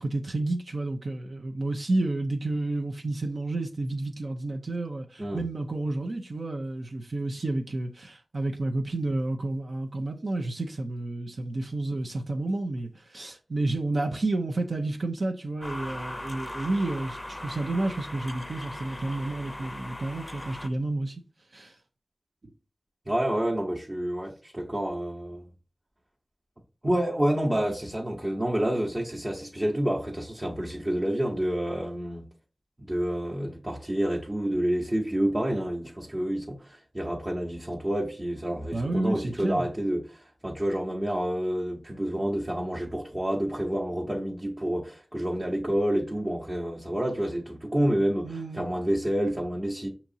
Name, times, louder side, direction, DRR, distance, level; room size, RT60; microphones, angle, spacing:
voice 1, 0.0-21.2 21.5-21.7 38.7-39.7 48.2-48.6, right 2 dB, 70° right, 0.5 m, -30 dB
sound 1, 15.6-20.7, left 1 dB, 20° left, 0.5 m, -39 dB
voice 2, 23.1-25.4 26.8-32.2 32.8-49.9, right 1 dB, 30° right, 0.8 m, -28 dB
5.8 x 2.8 x 2.7 m
wide cardioid pair, 50°, 0 cm